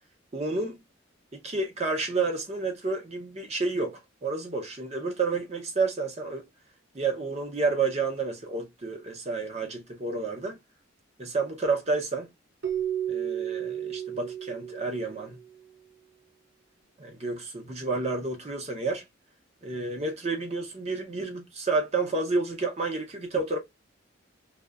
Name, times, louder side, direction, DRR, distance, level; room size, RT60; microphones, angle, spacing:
voice 1, 0.3-0.7 1.3-6.4 6.9-10.6 11.2-12.3 13.1-15.4 17.0-19.0 19.6-23.6, right 3 dB, 35° right, 0.6 m, -30 dB
Keyboard (musical), 12.6-15.5, right 10 dB, 70° right, 0.6 m, -33 dB
2.6 x 2.1 x 2.3 m
head